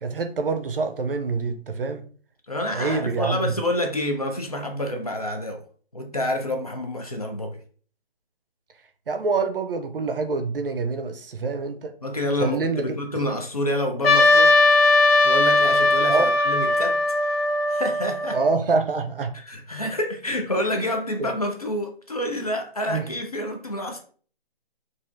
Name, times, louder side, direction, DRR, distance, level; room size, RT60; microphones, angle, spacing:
voice 1, 0.0-2.0 2.7-3.5 9.1-11.9 12.4-12.8 16.1-16.3 18.3-19.3 21.2-21.3 22.9-23.1, right 4 dB, 65° right, 0.5 m, -26 dB
voice 2, 2.5-5.6 5.9-7.6 12.0-14.6 15.2-18.4 19.3-24.0, left 1 dB, 40° left, 0.5 m, -28 dB
Trumpet, 14.0-18.5, left 2 dB, 80° left, 0.8 m, -19 dB
3.2 x 2.5 x 2.4 m
hypercardioid pair, 175°, 30 cm